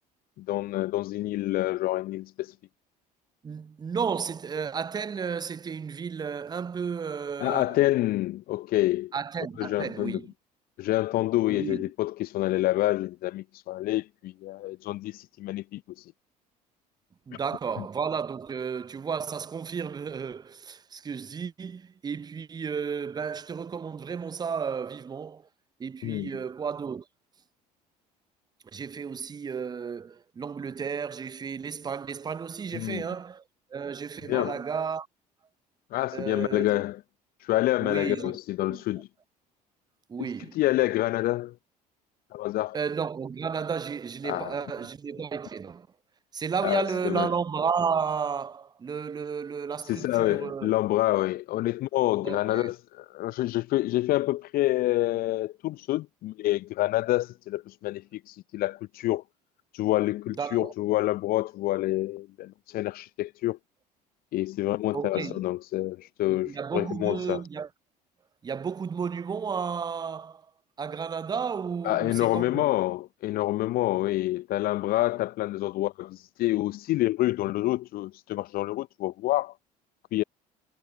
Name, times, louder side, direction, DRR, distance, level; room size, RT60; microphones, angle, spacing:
voice 1, 0.4-2.6 7.4-9.1 9.6-10.2 10.8-16.1 26.0-26.3 32.7-33.0 34.3-34.6 35.9-37.0 37.4-39.1 40.2-41.5 42.3-42.8 44.2-44.6 46.6-47.3 49.8-59.2 59.7-63.6 64.3-67.4 71.8-79.5 80.1-80.2, left 16 dB, 45° left, 0.7 m, -27 dB
voice 2, 3.4-7.8 9.1-10.3 11.5-11.9 17.3-25.5 25.8-27.1 28.7-33.4 33.7-35.1 36.1-36.8 37.8-38.3 38.7-38.8 40.1-40.6 42.7-45.9 46.3-50.7 52.2-52.7 60.4-60.7 64.9-65.4 66.3-67.7 68.4-70.4 70.8-72.7, right 6 dB, 20° right, 0.6 m, -33 dB
figure-of-eight pair, 60°, 21 cm